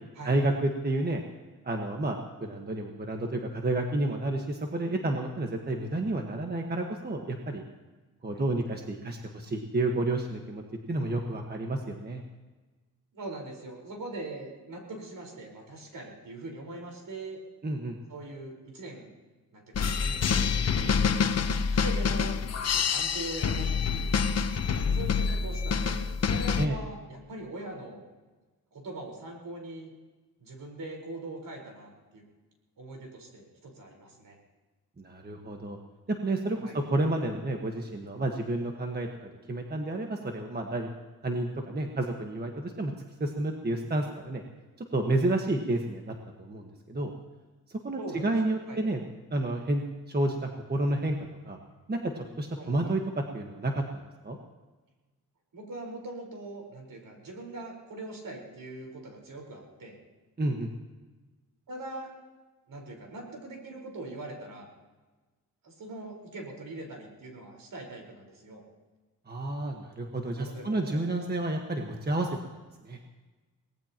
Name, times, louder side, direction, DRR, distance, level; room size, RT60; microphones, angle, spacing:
voice 1, 0.2-1.2 1.6-7.6 8.2-10.6 10.9-12.2 17.6-18.0 26.6-26.8 35.0-35.8 36.1-40.9 41.2-42.9 43.2-44.4 44.9-47.1 47.8-49.0 49.3-51.6 51.9-54.4 60.4-60.7 69.3-72.4 72.8-73.0, right 2 dB, 25° right, 2 dB, 1.4 m, -30 dB
voice 2, 13.1-17.4 18.1-19.1 19.5-21.2 21.7-24.1 24.9-28.0 28.7-29.9 30.4-32.2 32.8-34.4 36.6-36.8 48.0-48.8 52.6-52.9 55.5-60.0 61.7-62.1 62.7-64.7 65.6-68.6 70.4-71.3, right 2 dB, 60° right, 1 dB, 4.6 m, -42 dB
sound 1, 19.7-26.7, left 6 dB, 45° left, 0.9 m, -27 dB
23.5 x 18.5 x 3.0 m, 1.3 s
cardioid pair, 100°, 37 cm